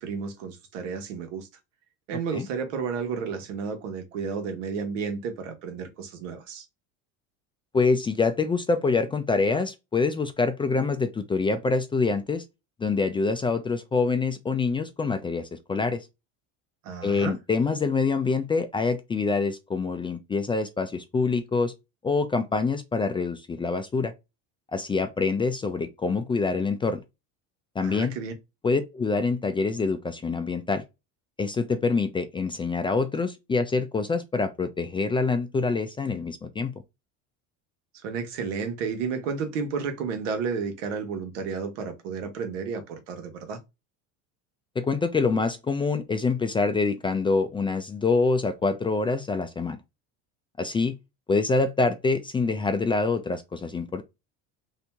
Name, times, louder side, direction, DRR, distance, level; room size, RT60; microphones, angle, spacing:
voice 1, 0.0-1.5 2.1-6.6 16.8-17.4 27.8-28.3 38.0-43.6, right 5 dB, 90° right, 1.3 m, -32 dB
voice 2, 7.7-12.4 12.8-16.1 17.0-21.7 22.0-24.1 24.7-27.0 27.8-28.1 28.6-30.8 31.4-36.7 44.8-49.8 50.6-51.0 51.3-54.0, left 4 dB, 15° left, 0.3 m, -25 dB
2.8 x 2.7 x 3.4 m
supercardioid pair, 115°, 36 cm